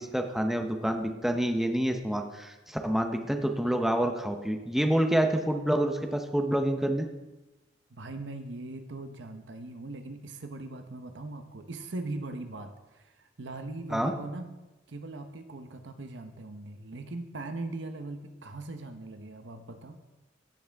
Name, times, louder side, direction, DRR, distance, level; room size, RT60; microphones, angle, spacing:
voice 1, 0.0-7.1 13.9-14.1, right 1 dB, ahead, 4 dB, 0.7 m, -27 dB
voice 2, 7.9-14.5 14.9-20.0, right 2 dB, 70° right, 7 dB, 0.9 m, -40 dB
16.0 x 6.3 x 3.5 m, 1.1 s
head